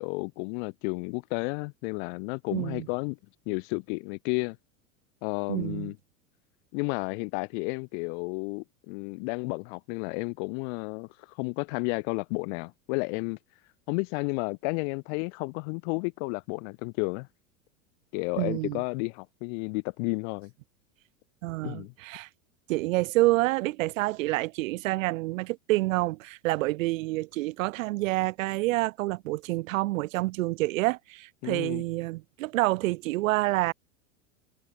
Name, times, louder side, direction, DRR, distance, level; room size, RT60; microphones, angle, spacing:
voice 1, 0.0-3.2 3.5-4.6 5.2-6.0 6.7-11.1 11.4-13.4 13.9-17.3 18.1-20.5 21.6-21.9 31.4-31.8, left 37 dB, 55° left, 1.3 m, -32 dB
voice 2, 2.5-2.9 5.5-5.9 18.4-18.8 21.4-22.3 22.7-33.7, right 20 dB, 75° right, 0.6 m, -28 dB
hypercardioid pair, 105°, 40 cm